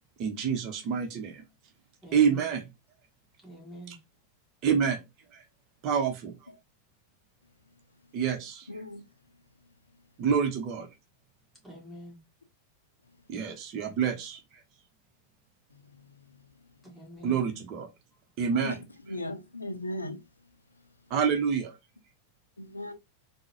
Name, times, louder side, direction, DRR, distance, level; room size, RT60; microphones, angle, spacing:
voice 1, 0.2-1.4 2.1-2.7 3.9-4.0 4.6-5.0 5.3-5.4 5.8-6.3 8.1-8.7 10.2-10.9 13.3-14.4 17.2-17.9 18.4-18.8 21.1-21.8, right 7 dB, 40° right, 0.6 m, -27 dB
voice 2, 2.0-2.5 3.4-4.0 11.6-12.2 16.8-17.4, equal, 5° right, 1.6 m, -46 dB
voice 3, 8.7-9.0 18.5-18.7 19.1-20.2 22.6-22.9, left 1 dB, 80° left, 0.5 m, -36 dB
3.6 x 2.0 x 2.9 m
figure-of-eight pair, 90°, 0 cm